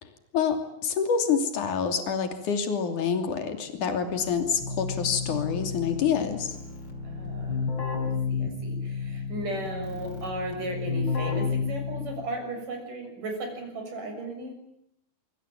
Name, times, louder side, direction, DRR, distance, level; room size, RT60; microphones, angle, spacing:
voice 1, 0.0-6.6, left 6 dB, 65° left, 6 dB, 4.4 m, -27 dB
Keyboard (musical), 4.1-12.4, left 5 dB, 35° left, 4.8 m, -32 dB
voice 2, 7.0-7.7 8.0-14.6, right 1 dB, 70° right, 4 dB, 8.3 m, -35 dB
26.0 x 25.0 x 9.0 m, 0.77 s
omnidirectional pair, 3.8 m